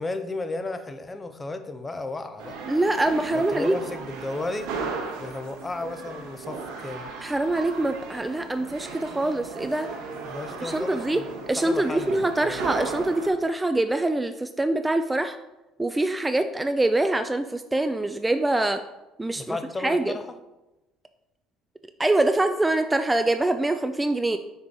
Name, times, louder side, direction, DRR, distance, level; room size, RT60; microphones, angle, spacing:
voice 1, 0.0-2.5 3.3-4.7 5.2-7.1 10.2-11.3 11.6-12.7 19.4-20.3, left 2 dB, 20° left, 9 dB, 0.6 m, -34 dB
sound 1, 2.4-13.3, right 4 dB, 75° right, 1.1 m, -36 dB
voice 2, 2.7-3.7 7.2-9.9 10.6-11.2 11.5-15.4 15.8-18.8 19.2-20.2 22.0-24.4, right 2 dB, 15° right, 8 dB, 0.3 m, -24 dB
5.5 x 4.5 x 3.8 m, 1.0 s
hypercardioid pair, 70°, 0 cm